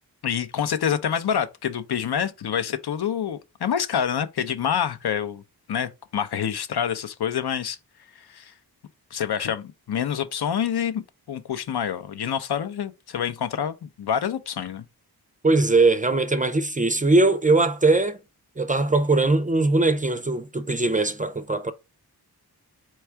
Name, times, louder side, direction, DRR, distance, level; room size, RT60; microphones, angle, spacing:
voice 1, 0.2-5.4 5.7-7.8 8.2-8.5 9.1-11.0 11.3-14.9, left 8 dB, 75° left, 0.7 m, -27 dB
voice 2, 15.4-18.2 18.6-21.7, right 3 dB, 20° right, 0.4 m, -20 dB
4.4 x 2.3 x 4.4 m
wide cardioid pair, 110°, 39 cm